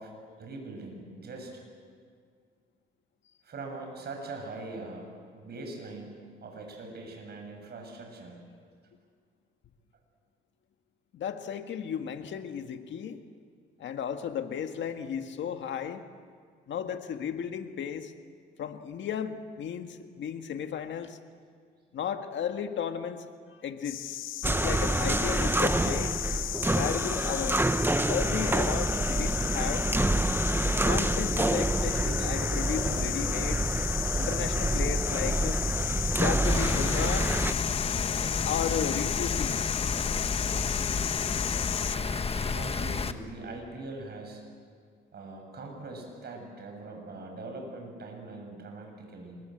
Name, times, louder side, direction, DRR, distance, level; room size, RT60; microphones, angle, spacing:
voice 1, 0.0-1.6 3.4-6.1 6.4-8.4 42.5-44.4 45.1-49.4, right 2 dB, 55° right, 2 dB, 7.6 m, -42 dB
voice 2, 11.1-13.2 13.8-16.0 16.7-18.1 18.6-21.2 21.9-24.2 24.4-26.2 26.7-27.6 28.0-29.9 30.8-33.7 34.2-35.6 36.1-37.3 38.4-39.7, left 8 dB, 70° left, 7 dB, 1.8 m, -34 dB
sound 1, 23.8-42.0, left 13 dB, 85° left, 0.8 m, -34 dB
sound 2, 24.4-37.5, right 2 dB, 10° right, 0.7 m, -27 dB
Rain, 36.4-43.1, left 4 dB, 30° left, 1.3 m, -31 dB
26.0 x 22.0 x 7.9 m, 2.1 s
cardioid pair, 90°, 20 cm